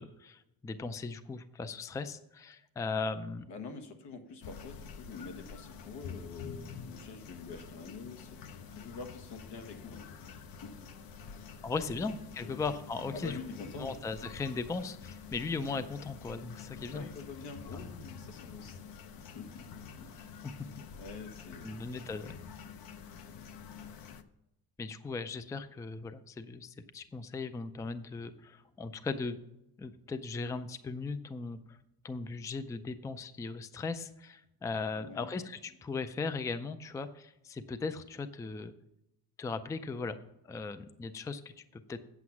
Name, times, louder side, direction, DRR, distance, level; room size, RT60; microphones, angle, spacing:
voice 1, 0.0-3.4 11.6-13.4 13.8-17.1 20.4-20.6 21.6-22.3 24.8-29.4 29.8-31.8 32.0-38.7 39.4-40.2 40.4-42.0, left 4 dB, 10° left, 12 dB, 0.3 m, -38 dB
voice 2, 3.5-12.1 12.4-12.6 13.1-14.0 16.9-19.0 19.3-20.5 21.0-21.9 22.9-23.0 34.9-35.4, left 4 dB, 90° left, 6 dB, 1.6 m, -47 dB
sound 1, 4.4-24.2, left 6 dB, 60° left, 0.8 m, -48 dB
8.4 x 8.0 x 5.9 m, 0.87 s
cardioid pair, 160°, 40 cm